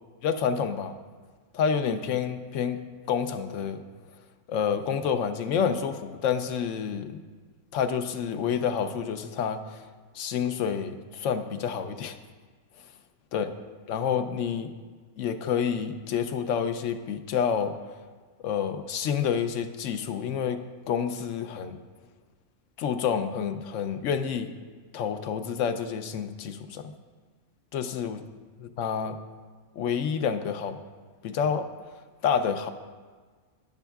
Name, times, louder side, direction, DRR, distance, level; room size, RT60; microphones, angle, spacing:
voice 1, 0.2-0.9 1.5-2.8 3.1-3.8 4.5-7.2 7.7-9.9 10.1-12.2 13.3-13.5 13.9-14.7 15.2-17.8 18.4-20.6 20.9-21.8 22.8-24.5 24.9-26.9 27.7-28.2 28.6-29.2 29.8-30.8 31.2-31.7 32.2-32.7, left 7 dB, 75° left, 9 dB, 0.9 m, -28 dB
10.5 x 9.9 x 2.3 m, 1.5 s
omnidirectional pair, 1.3 m